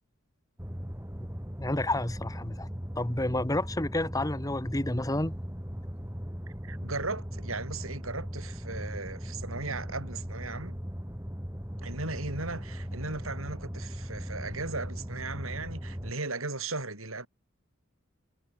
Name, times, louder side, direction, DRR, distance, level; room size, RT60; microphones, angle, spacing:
sound 1, 0.6-16.1, equal, 10° right, 3.9 m, -38 dB
voice 1, 1.6-2.7 2.9-5.3, left 1 dB, 15° left, 1.5 m, -30 dB
voice 2, 6.6-10.8 11.8-17.3, right 3 dB, 85° right, 7.8 m, -37 dB
head